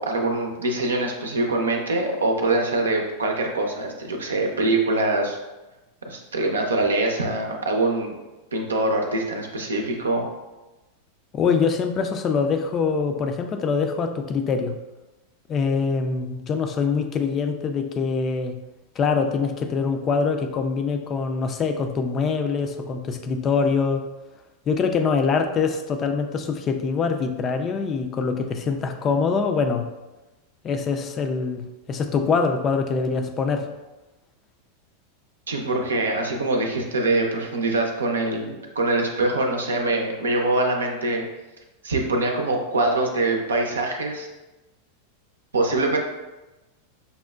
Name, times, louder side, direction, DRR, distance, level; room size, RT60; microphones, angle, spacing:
voice 1, 0.0-5.4 6.1-8.2 8.5-10.3 35.5-41.2 41.8-44.3 45.5-46.0, right 2 dB, 85° right, 2 dB, 0.5 m, -24 dB
voice 2, 11.3-14.7 15.5-18.6 19.0-24.0 24.7-29.9 30.6-33.7, left 5 dB, 30° left, 6 dB, 0.4 m, -24 dB
5.4 x 2.1 x 2.3 m, 1.1 s
hypercardioid pair, 95°, 0 cm